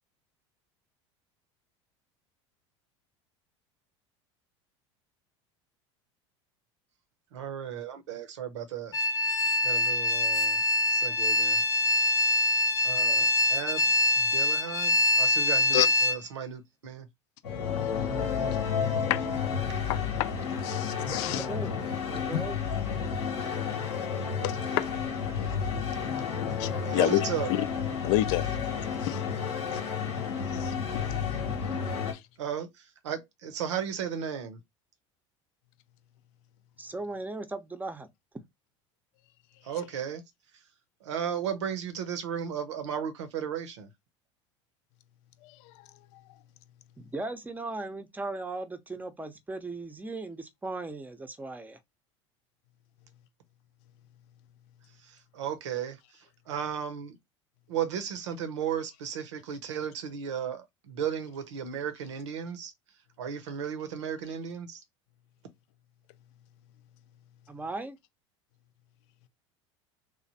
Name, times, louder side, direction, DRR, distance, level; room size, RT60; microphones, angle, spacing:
voice 1, 7.3-11.6 12.8-17.1 25.8-26.0 26.3-26.6 26.8-27.6 32.4-34.6 39.6-40.2 40.5-40.6 41.0-43.9 55.0-57.2 57.7-64.8, right 8 dB, 85° right, 0.7 m, -35 dB
sound 1, 8.9-16.2, left 2 dB, 25° left, 0.8 m, -24 dB
sound 2, 17.4-32.1, left 6 dB, 85° left, 1.1 m, -31 dB
voice 2, 19.9-20.3 20.6-21.5 22.3-22.5 24.4-24.9 26.6-27.6 28.0-28.5 29.0-29.2 29.7-29.8 30.5-30.7 32.1-32.2 45.4-45.7, left 15 dB, 65° left, 0.5 m, -29 dB
voice 3, 21.0-21.7 22.0-22.6 36.8-38.1 47.0-51.8 67.5-68.0, right 2 dB, 10° right, 0.6 m, -37 dB
3.2 x 2.1 x 4.0 m
hypercardioid pair, 85°, 15 cm